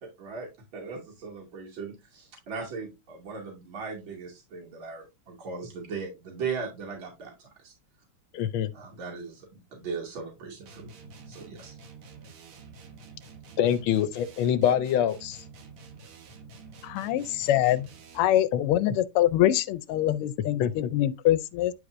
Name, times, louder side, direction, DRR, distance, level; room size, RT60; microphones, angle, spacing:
voice 1, 0.0-7.7 8.7-11.8, right 5 dB, 60° right, 3.2 m, -38 dB
voice 2, 8.3-8.7 13.6-15.4 18.5-18.6 18.9-19.0 20.6-20.9, left 9 dB, 70° left, 1.4 m, -25 dB
sound 1, 10.7-18.4, right 4 dB, 80° right, 2.2 m, -48 dB
voice 3, 16.8-17.9 18.1-21.7, left 13 dB, 90° left, 1.6 m, -24 dB
10.0 x 4.8 x 2.5 m
omnidirectional pair, 2.4 m